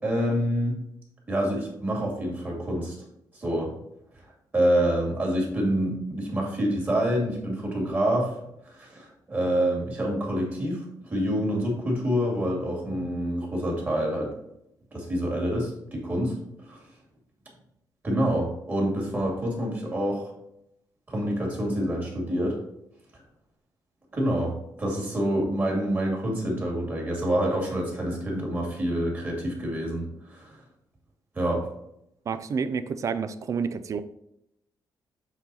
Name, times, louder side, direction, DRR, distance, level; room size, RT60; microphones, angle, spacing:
voice 1, 0.0-0.8 1.3-3.0 3.3-3.7 4.5-8.4 8.7-14.3 14.9-16.8 18.0-20.3 21.1-22.6 24.1-30.6 31.3-31.7, equal, 25° right, -1 dB, 2.3 m, -27 dB
voice 2, 32.3-34.0, right 6 dB, 40° right, 12 dB, 0.4 m, -29 dB
7.2 x 3.9 x 4.1 m, 0.78 s
wide cardioid pair, 160°, 8 cm